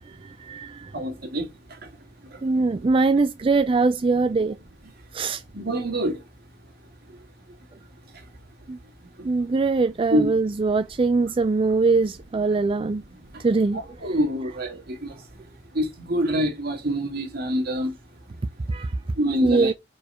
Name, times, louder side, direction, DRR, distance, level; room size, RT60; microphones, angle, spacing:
voice 1, 0.4-0.9 2.4-4.6 5.1-5.4 8.7-8.8 9.2-13.0 13.4-13.8 18.7-18.9 19.4-19.7, right 3 dB, 30° right, 0.4 m, -22 dB
voice 2, 0.9-1.5 2.3-2.4 5.5-6.2 10.1-10.3 13.3-13.4 13.7-15.1 15.7-17.9 19.2-19.7, equal, 55° right, 2.3 m, -25 dB
4.9 x 4.7 x 5.6 m
head